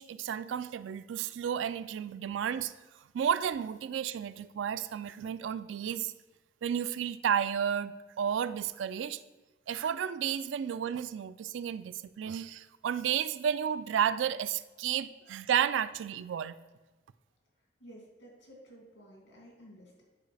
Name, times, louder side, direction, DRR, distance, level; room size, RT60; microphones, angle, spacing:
voice 1, 0.0-2.7 3.1-6.1 6.6-7.9 8.2-9.2 9.7-16.6, right 8 dB, 75° right, 15 dB, 0.3 m, -32 dB
voice 2, 17.8-20.0, equal, 85° left, -3 dB, 2.5 m, -53 dB
10.5 x 4.7 x 3.3 m, 1.2 s
head